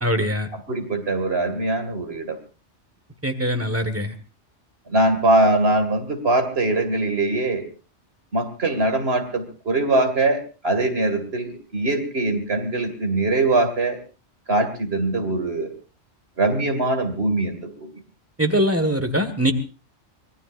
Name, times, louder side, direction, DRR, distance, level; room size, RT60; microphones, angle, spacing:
voice 1, 0.0-0.5 3.2-4.1 18.4-19.5, equal, 10° right, 9 dB, 1.7 m, -22 dB
voice 2, 0.7-2.4 4.9-7.7 8.3-14.0 14.5-15.7 16.4-17.9, right 2 dB, 55° right, 7 dB, 2.7 m, -22 dB
25.5 x 19.0 x 2.6 m, 0.34 s
omnidirectional pair, 1.2 m